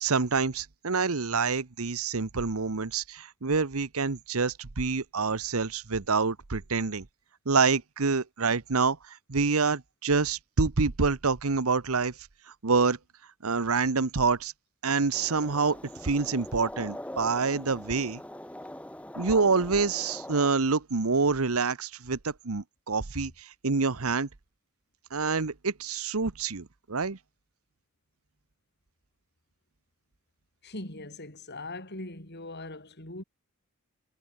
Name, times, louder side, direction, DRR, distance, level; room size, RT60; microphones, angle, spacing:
voice 1, 0.0-7.1 7.5-12.1 12.6-13.0 13.4-14.5 14.8-18.2 19.2-24.3 25.1-27.2, right 4 dB, 85° right, 1.1 m, -27 dB
sound 1, 15.1-20.5, left 1 dB, 5° left, 3.8 m, -42 dB
voice 2, 30.6-33.2, left 2 dB, 50° left, 6.8 m, -40 dB
head